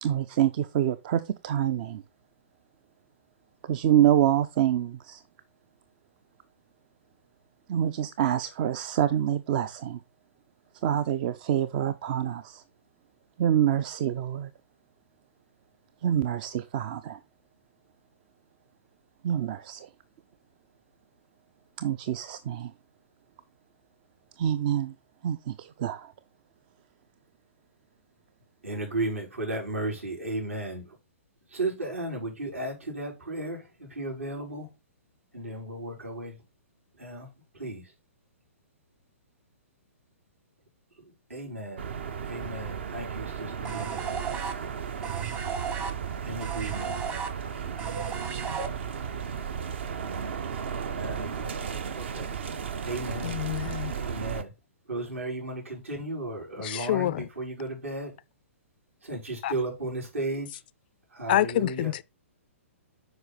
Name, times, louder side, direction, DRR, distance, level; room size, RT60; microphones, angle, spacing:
voice 1, 0.0-2.0 3.7-5.2 7.7-10.0 10.8-12.6 13.4-14.5 16.0-17.2 19.2-19.9 21.8-22.7 24.4-24.9 25.2-26.1, right 10 dB, 40° right, 0.5 m, -26 dB
voice 2, 28.6-31.0 31.5-34.7 35.3-36.4 37.0-37.3 37.5-37.9 41.0-41.8 42.2-44.0 46.2-46.9 51.0-52.3 52.8-53.3 53.8-54.5 54.9-58.1 59.0-60.6 61.1-61.9, right 2 dB, 75° right, 5.1 m, -35 dB
sound 1, 41.8-54.4, right 7 dB, 55° right, 1.0 m, -34 dB
sound 2, 43.6-49.1, right 6 dB, 25° right, 1.1 m, -35 dB
voice 3, 53.2-53.9 56.6-57.2 59.4-59.5 61.3-62.0, left 14 dB, 45° left, 0.4 m, -27 dB
7.9 x 5.2 x 4.1 m
figure-of-eight pair, 120°, 7 cm